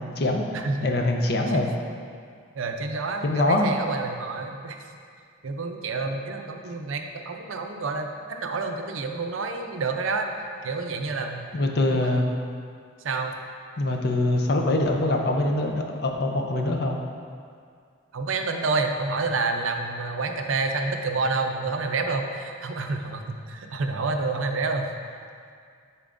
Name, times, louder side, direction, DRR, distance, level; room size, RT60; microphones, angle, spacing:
voice 1, 0.0-0.5 0.8-1.7 3.2-3.7 11.5-12.3 13.8-17.0, left 2 dB, 55° left, 2 dB, 0.5 m, -23 dB
voice 2, 0.5-0.9 1.5-1.6 2.6-4.8 5.4-10.3 10.6-11.5 11.9-12.2 13.0-13.3 18.1-24.9, right 3 dB, 85° right, 4 dB, 0.5 m, -28 dB
10.5 x 4.4 x 2.6 m, 2.2 s
head